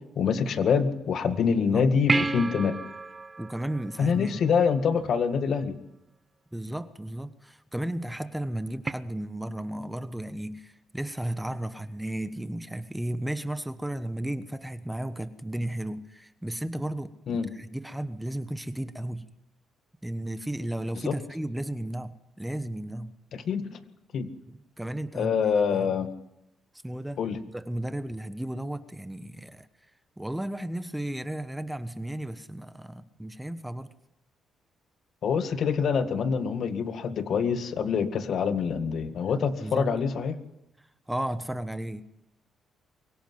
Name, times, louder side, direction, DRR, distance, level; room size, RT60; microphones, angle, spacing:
voice 1, 0.2-2.7 4.0-5.8 17.3-17.5 21.0-21.1 23.3-23.8 24.1-24.3 25.1-26.1 27.2-27.4 35.2-40.4, left 6 dB, 60° left, 10 dB, 1.9 m, -25 dB
sound 1, 2.1-4.8 8.9-9.0, right 3 dB, 25° right, 1.0 m, -31 dB
voice 2, 3.4-4.4 6.5-19.3 20.0-23.1 24.5-25.3 25.7-26.0 26.8-29.7 30.2-33.9 39.5-39.9 40.8-42.0, right 1 dB, 5° right, 12 dB, 1.2 m, -34 dB
23.5 x 17.0 x 9.5 m, 0.87 s
cardioid pair, 90°, 0 cm